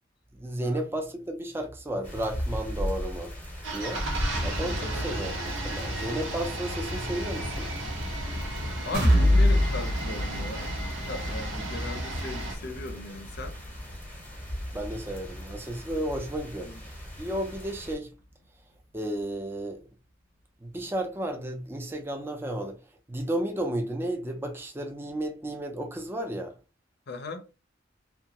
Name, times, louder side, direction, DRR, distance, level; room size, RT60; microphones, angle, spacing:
voice 1, 0.3-3.3 3.7-4.0 4.4-7.7 14.7-16.8 17.2-18.1 18.9-19.8 20.6-22.8 23.1-26.6, right 1 dB, 10° right, 0.4 m, -33 dB
sound 1, 2.0-18.0, equal, 10° left, 0.8 m, -38 dB
sound 2, 3.6-12.6, right 1 dB, 90° right, 0.9 m, -34 dB
voice 2, 8.8-10.8 11.0-13.6 16.6-16.8 27.1-27.5, left 2 dB, 55° left, 0.5 m, -38 dB
sound 3, 8.9-16.7 17.1-17.2 17.7-17.8, left 1 dB, 60° right, 0.9 m, -28 dB
2.8 x 2.2 x 2.7 m
head